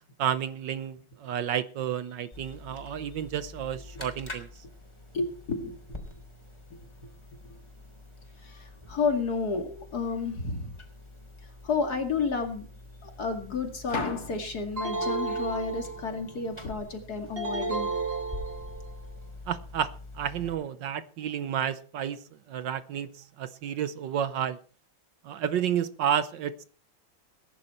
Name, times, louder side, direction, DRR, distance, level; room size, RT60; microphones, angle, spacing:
voice 1, 0.2-4.5 19.5-24.6 25.2-26.6, right 9 dB, 70° right, 1.4 m, -31 dB
sound 1, 2.3-20.5, left 2 dB, 15° left, 3.4 m, -46 dB
voice 2, 2.9-3.2 3.9-4.1 5.1-6.0 6.7-6.8 8.4-10.7 11.6-12.7 13.0-17.9, left 4 dB, 50° left, 2.7 m, -31 dB
sound 2, 14.8-16.3 17.4-18.9, right 3 dB, 30° right, 2.2 m, -32 dB
20.0 x 10.5 x 4.3 m
omnidirectional pair, 2.2 m